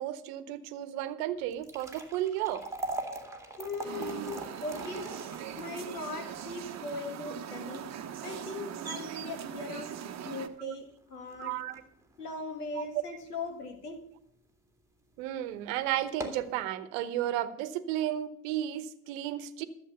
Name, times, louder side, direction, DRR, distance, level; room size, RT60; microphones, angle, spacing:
voice 1, 0.0-2.6 10.6-10.7 11.4-11.8 12.8-13.0 15.2-19.6, right 12 dB, 65° right, 14 dB, 1.1 m, -33 dB
sound 1, 1.4-13.7 14.1-14.2 15.0-15.1 15.5-15.6 16.0-16.6, right 2 dB, 5° right, 2.4 m, -43 dB
voice 2, 3.6-5.1 5.6-7.9 8.2-9.9 10.2-11.6 12.2-14.0, left 3 dB, 90° left, 6 dB, 1.8 m, -39 dB
sound 2, 3.8-10.5, right 9 dB, 35° right, 1.1 m, -40 dB
13.0 x 7.7 x 6.6 m, 0.78 s
hypercardioid pair, 65°, 45 cm